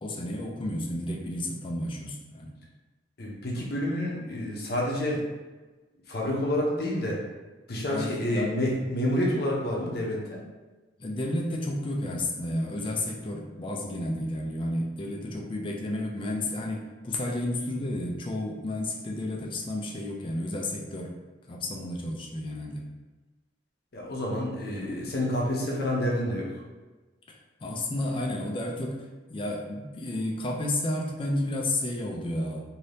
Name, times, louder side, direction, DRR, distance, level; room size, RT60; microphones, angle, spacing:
voice 1, 0.0-2.5 7.9-8.5 11.0-21.1 21.5-22.8 27.6-29.0 29.3-32.6, left 1 dB, 25° left, 0 dB, 0.4 m, -31 dB
voice 2, 3.2-5.2 6.1-7.2 7.7-10.4 23.9-26.5, left 1 dB, 55° left, -3 dB, 0.7 m, -28 dB
2.7 x 2.6 x 3.3 m, 1.2 s
head